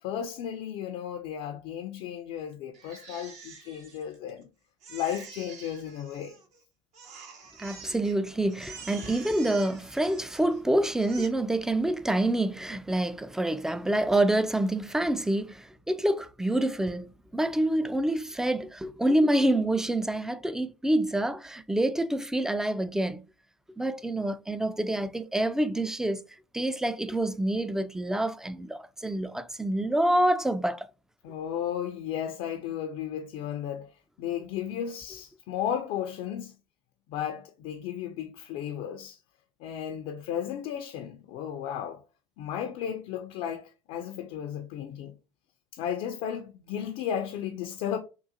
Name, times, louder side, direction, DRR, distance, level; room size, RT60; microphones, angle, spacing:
voice 1, 0.0-4.5 4.9-6.4 31.2-36.5 37.1-39.2 39.6-42.0 42.4-45.1 45.7-48.0, left 9 dB, 70° left, 0.4 m, -34 dB
Crying sobbing, 2.7-4.4 4.8-6.6 6.9-8.2 8.5-10.6 10.9-11.3, right 5 dB, 60° right, 1.1 m, -47 dB
voice 2, 7.6-23.2 23.8-26.2 26.5-30.9, right 1 dB, 5° right, 0.3 m, -27 dB
3.7 x 2.4 x 2.6 m
hypercardioid pair, 75°, 13 cm